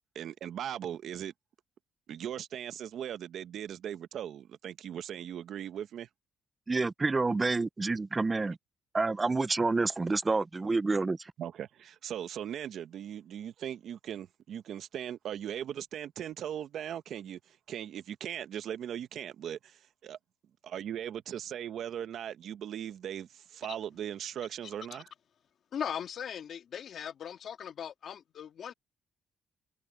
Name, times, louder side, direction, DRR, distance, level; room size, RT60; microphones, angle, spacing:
voice 1, 0.1-1.3 2.1-6.1 11.4-20.2 20.6-25.1, right 10 dB, 70° right, 1.0 m, -39 dB
voice 2, 6.7-8.6 8.9-11.2, right 3 dB, 25° right, 0.4 m, -28 dB
voice 3, 25.7-28.7, left 8 dB, 60° left, 2.3 m, -39 dB
cardioid pair, 90°, 0 cm